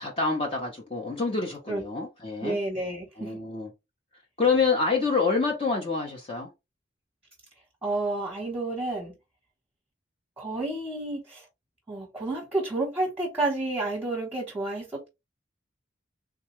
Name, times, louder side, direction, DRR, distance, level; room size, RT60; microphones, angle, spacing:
voice 1, 0.0-2.6 3.2-3.7 4.4-6.5, left 4 dB, 30° left, 0.6 m, -27 dB
voice 2, 2.4-3.4 7.8-9.1 10.4-11.4 11.9-15.1, right 2 dB, 10° right, 0.9 m, -30 dB
3.5 x 2.2 x 3.0 m
head